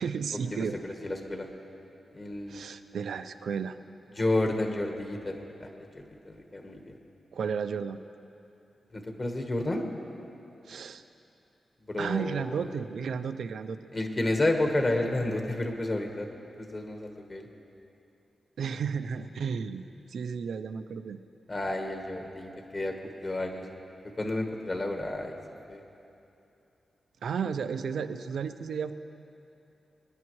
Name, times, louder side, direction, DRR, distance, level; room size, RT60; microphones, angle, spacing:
voice 1, 0.0-0.8 2.5-3.8 7.3-8.0 10.6-11.0 12.0-13.8 18.6-19.8 20.1-21.2 27.2-28.9, right 6 dB, 85° right, 10 dB, 0.5 m, -33 dB
voice 2, 0.5-1.5 2.1-2.6 4.2-5.7 5.9-7.0 8.9-9.8 11.9-12.7 13.9-16.3 16.6-17.5 21.5-23.0 23.2-23.7 24.2-25.4 25.7-25.8, left 1 dB, 30° left, 3 dB, 1.3 m, -31 dB
24.5 x 10.5 x 3.1 m, 2.9 s
wide cardioid pair, 135°, 0 cm